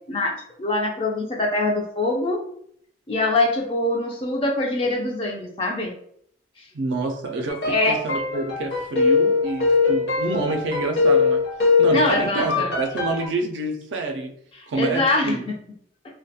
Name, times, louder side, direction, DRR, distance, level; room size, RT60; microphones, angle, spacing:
voice 1, 0.1-2.4 3.1-5.9 7.7-8.0 11.9-12.7 14.7-15.4, left 2 dB, 30° left, 0 dB, 0.3 m, -23 dB
voice 2, 6.7-11.4 11.8-14.3 14.7-15.5, right 2 dB, 70° right, 3 dB, 0.4 m, -27 dB
sound 1, 7.5-13.3, left 4 dB, 60° left, 0.6 m, -21 dB
2.2 x 2.1 x 2.7 m, 0.66 s
head